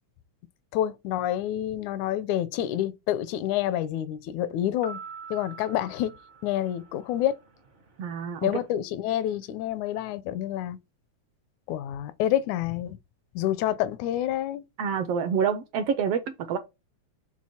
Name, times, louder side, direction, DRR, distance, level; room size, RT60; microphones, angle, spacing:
voice 1, 0.7-5.0 5.3-6.2 6.4-7.4 8.4-10.8 11.7-13.0 13.4-14.7, left 12 dB, 80° left, 2.0 m, -28 dB
sound 1, 4.8-7.3, right 5 dB, 60° right, 0.7 m, -44 dB
voice 2, 8.0-8.5 14.8-16.6, right 7 dB, 80° right, 1.4 m, -27 dB
7.6 x 3.7 x 4.3 m
omnidirectional pair, 3.4 m